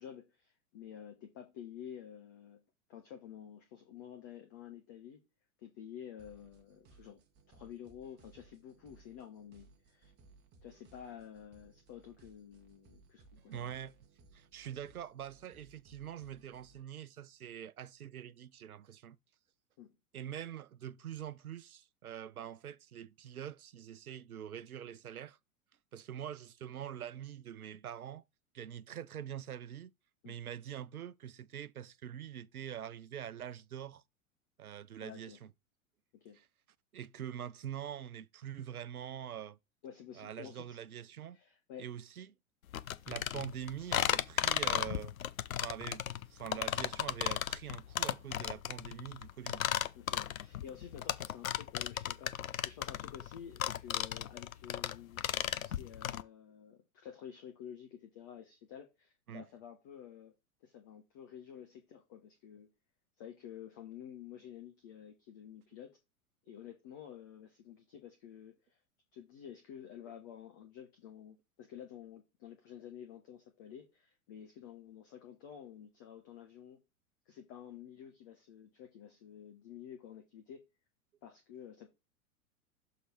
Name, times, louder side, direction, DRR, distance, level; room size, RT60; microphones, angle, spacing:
voice 1, 0.0-2.6 2.9-5.3 5.6-7.2 7.5-10.1 10.6-13.8 19.8-19.9 30.2-30.4 35.0-35.4 36.2-36.4 39.8-40.8 41.3-41.9 46.6-46.8 50.0-60.3 60.6-62.7 63.2-66.0 66.4-68.8 69.1-76.8 77.3-80.7 81.2-81.9, left 9 dB, 15° left, 0.3 m, -51 dB
sound 1, 6.2-16.8, right 3 dB, 25° right, 1.0 m, -63 dB
voice 2, 13.5-13.9 14.3-19.2 20.1-25.4 25.9-28.2 28.5-29.9 30.2-34.0 34.6-35.5 36.9-39.6 40.1-41.4 41.8-42.3 43.1-45.1 45.6-49.7 59.3-59.4, right 10 dB, 80° right, 0.5 m, -44 dB
sound 2, 42.7-56.2, left 11 dB, 70° left, 0.6 m, -35 dB
6.5 x 4.0 x 4.3 m
figure-of-eight pair, 95°, 43 cm